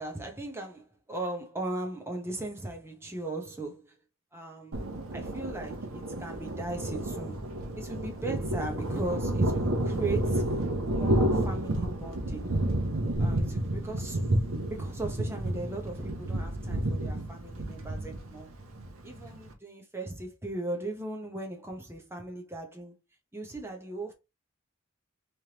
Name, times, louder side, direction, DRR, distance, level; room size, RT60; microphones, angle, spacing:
voice 1, 0.0-3.9 4.3-4.8 5.1-10.5 10.9-12.5 13.2-14.2 14.7-18.5 19.0-22.9 23.3-24.1, right 2 dB, 10° right, 0.9 m, -38 dB
Thunder, 4.7-19.5, right 1 dB, 75° right, 0.9 m, -30 dB
3.4 x 3.1 x 2.9 m
head